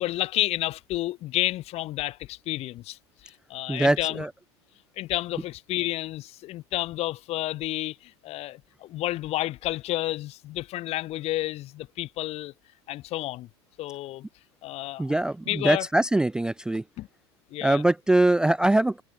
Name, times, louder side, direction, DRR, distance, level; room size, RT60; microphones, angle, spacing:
voice 1, 0.0-4.2 5.0-12.5 12.9-13.5 13.8-14.3 14.6-15.2 15.5-15.9 17.0-17.1 17.5-17.8, left 16 dB, 50° left, 1.3 m, -30 dB
voice 2, 3.7-4.3 15.0-16.8 17.6-19.0, right 1 dB, 5° right, 0.4 m, -22 dB
hypercardioid pair, 85°, 14 cm